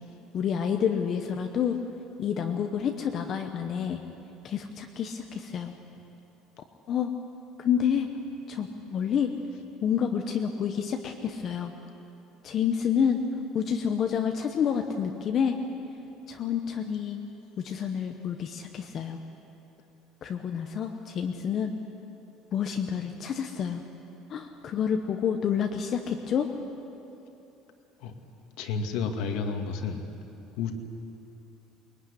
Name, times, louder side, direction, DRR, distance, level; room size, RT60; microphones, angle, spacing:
voice 1, 0.3-1.8 2.2-4.0 4.4-5.7 6.9-7.1 7.6-8.1 8.5-9.3 9.8-11.7 12.4-13.2 13.5-15.6 16.3-17.2 17.6-19.2 20.2-21.7 22.5-23.8 24.3-26.5, left 8 dB, 30° left, 5 dB, 1.0 m, -28 dB
voice 2, 28.6-30.1 30.6-30.7, left 5 dB, 60° left, 5 dB, 2.2 m, -31 dB
22.0 x 21.0 x 9.9 m, 2.9 s
cardioid pair, 180°, 0 cm